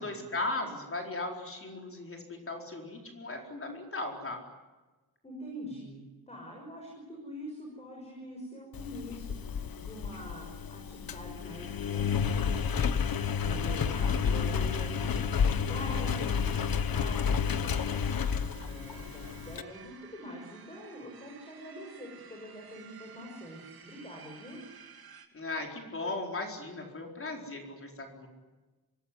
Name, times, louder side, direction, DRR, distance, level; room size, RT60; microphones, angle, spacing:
voice 1, 0.0-4.4 25.3-28.3, left 2 dB, 35° left, 1 dB, 4.5 m, -37 dB
voice 2, 5.2-9.3 9.8-12.9 13.4-24.6, equal, 15° left, 0 dB, 6.3 m, -45 dB
Engine, 8.7-19.6, left 6 dB, 65° left, 1.3 m, -31 dB
sound 1, 17.5-25.3, right 7 dB, 70° right, 3.2 m, -53 dB
25.5 x 19.5 x 9.9 m, 1.2 s
wide cardioid pair, 170°, 38 cm